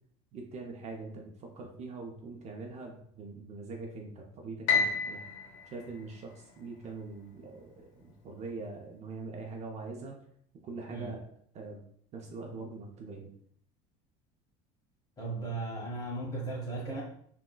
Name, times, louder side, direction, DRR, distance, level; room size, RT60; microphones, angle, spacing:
voice 1, 0.3-5.2 5.7-10.2 10.6-11.3 11.5-11.8 12.1-13.3, right 3 dB, 40° right, 1 dB, 0.5 m, -43 dB
Piano, 4.7-6.9, left 5 dB, 85° left, 0.7 m, -31 dB
voice 2, 15.2-17.0, right 2 dB, 20° left, -3 dB, 1.3 m, -36 dB
3.7 x 2.2 x 2.2 m, 0.64 s
supercardioid pair, 105°, 17 cm